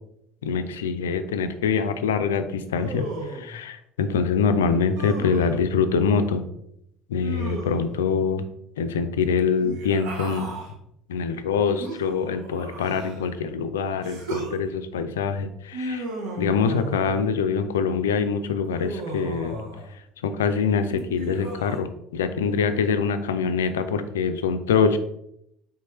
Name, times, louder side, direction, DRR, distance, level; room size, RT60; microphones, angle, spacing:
voice 1, 0.4-3.1 3.3-6.4 7.1-8.4 8.8-10.5 11.1-16.1 16.4-19.6 20.2-25.0, left 6 dB, 70° left, 9 dB, 0.3 m, -24 dB
Human voice, 2.7-3.5 4.9-5.6 7.2-8.0 9.6-10.7 11.8-13.3 14.0-14.6 15.7-17.3 18.7-19.9 20.9-21.8, right 2 dB, 60° right, 0.9 m, -35 dB
4.3 x 3.5 x 3.0 m, 0.77 s
figure-of-eight pair, 60°, 0 cm